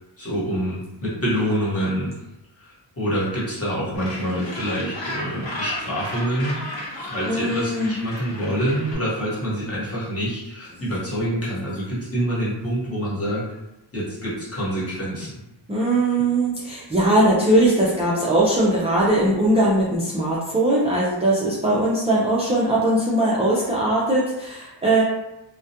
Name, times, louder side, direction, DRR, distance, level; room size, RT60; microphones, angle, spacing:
voice 1, 0.2-2.2 2.6-6.6 7.0-13.4 13.9-15.4, equal, 30° left, -8 dB, 1.1 m, -26 dB
Gull seagull, 4.0-9.0, left 1 dB, 80° left, 0.8 m, -34 dB
voice 2, 7.3-7.9 15.7-25.0, right 1 dB, 15° right, -7 dB, 0.3 m, -20 dB
2.3 x 2.1 x 2.7 m, 0.92 s
wide cardioid pair, 130°, 45 cm